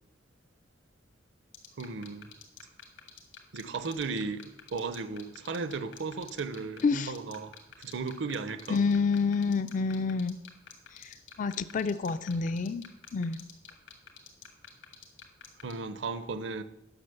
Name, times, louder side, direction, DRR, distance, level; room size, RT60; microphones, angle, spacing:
sound 1, 1.5-15.7, left 9 dB, 85° left, 2.0 m, -47 dB
voice 1, 1.8-2.3 3.5-8.9 15.6-16.6, right 4 dB, 70° right, 0.7 m, -36 dB
voice 2, 8.7-10.4 10.9-12.8 13.1-13.4, left 4 dB, 40° left, 0.3 m, -28 dB
9.9 x 6.2 x 6.7 m
head